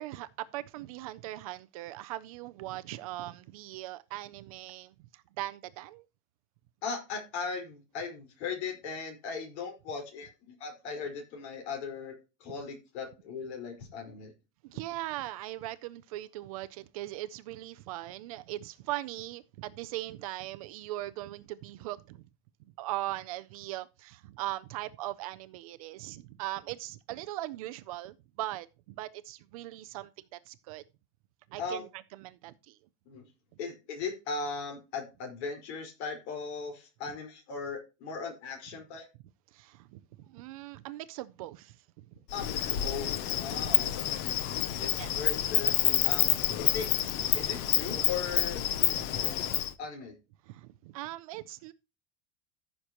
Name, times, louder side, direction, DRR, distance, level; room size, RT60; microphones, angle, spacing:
voice 1, 0.0-6.1 14.6-22.2 22.8-30.8 31.5-32.8 39.5-42.1 43.8-43.9 45.0-45.1 50.4-51.7, right 16 dB, 35° right, 0.4 m, -40 dB
voice 2, 6.8-12.1 12.4-14.3 31.6-31.8 33.1-33.2 33.6-39.1 42.3-44.4 44.8-46.3 46.6-46.9 47.3-48.6 49.2-50.1, left 5 dB, 65° left, 4.6 m, -38 dB
Insect, 42.3-49.7, left 12 dB, 30° left, 0.5 m, -28 dB
14.5 x 6.5 x 2.9 m
supercardioid pair, 180°, 35 cm